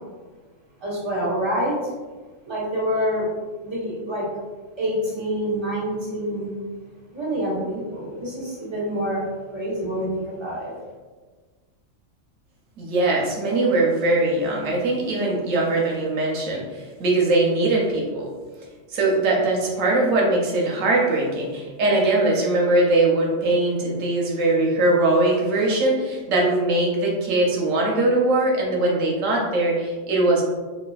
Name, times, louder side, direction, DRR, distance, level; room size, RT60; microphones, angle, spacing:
voice 1, 0.8-1.8 2.5-3.3 3.6-4.3 4.8-6.5 7.1-9.2 9.5-10.7, equal, 20° right, -9 dB, 1.3 m, -26 dB
voice 2, 12.8-18.3 18.9-30.4, right 2 dB, 85° right, -2 dB, 1.1 m, -21 dB
4.2 x 2.3 x 2.3 m, 1.4 s
omnidirectional pair, 1.3 m